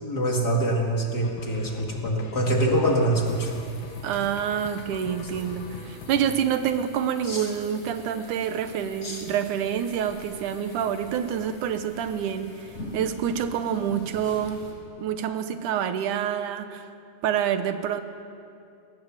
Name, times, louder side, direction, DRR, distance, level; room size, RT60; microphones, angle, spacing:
voice 1, 0.0-3.5 7.3-7.5 9.0-9.2 13.8-14.0, right 1 dB, 35° left, 0 dB, 2.4 m, -25 dB
sound 1, 1.2-6.4, left 4 dB, 80° left, 2.7 m, -42 dB
sound 2, 3.2-14.7, left 2 dB, 60° left, 5.4 m, -45 dB
voice 2, 4.0-14.6 15.0-16.9 17.2-18.0, right 9 dB, 85° right, 9 dB, 2.5 m, -27 dB
21.0 x 18.5 x 7.5 m, 2.5 s
omnidirectional pair, 3.5 m